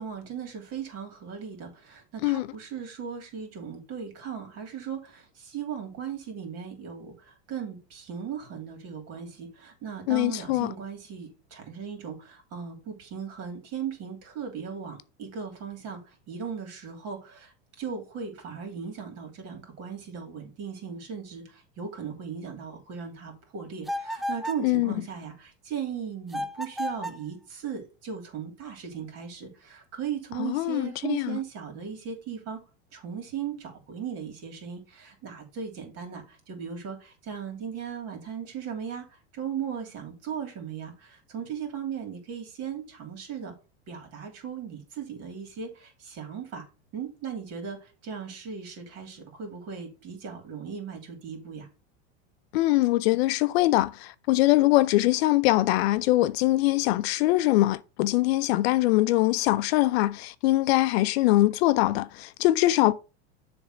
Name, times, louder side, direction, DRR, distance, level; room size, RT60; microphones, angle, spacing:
voice 1, 0.0-32.6 32.9-43.5 43.9-46.7 46.9-51.7, right 7 dB, 50° right, 3.0 m, -37 dB
voice 2, 10.1-10.7 24.6-24.9 30.4-31.4 52.5-62.9, left 17 dB, 70° left, 0.6 m, -23 dB
sound 1, 23.8-24.7 26.3-27.3, left 1 dB, ahead, 0.4 m, -33 dB
7.0 x 3.5 x 6.2 m
hypercardioid pair, 110°, 33 cm